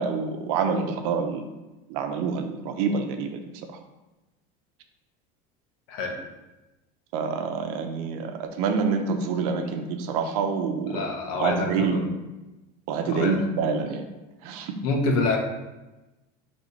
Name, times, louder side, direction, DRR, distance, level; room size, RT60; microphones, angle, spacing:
voice 1, 0.0-1.4 1.9-3.4 7.1-11.0 11.4-12.0 12.9-14.0 14.4-14.8, right 5 dB, 75° right, 6 dB, 0.8 m, -27 dB
voice 2, 10.8-12.0 13.0-13.4 14.8-15.4, left 3 dB, 80° left, 1 dB, 1.3 m, -27 dB
6.6 x 3.4 x 4.1 m, 1.1 s
cardioid pair, 170°, 19 cm